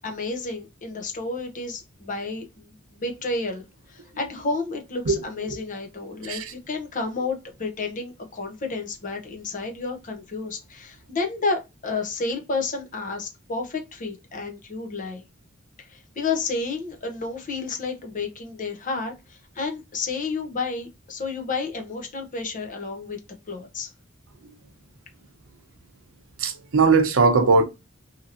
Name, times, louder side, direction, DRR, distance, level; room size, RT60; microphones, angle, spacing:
voice 1, 0.0-15.2 15.8-23.2 23.5-23.9, left 3 dB, 40° left, 0.7 m, -31 dB
voice 2, 26.4-27.6, right 4 dB, 70° right, 0.6 m, -19 dB
2.8 x 2.8 x 2.5 m
head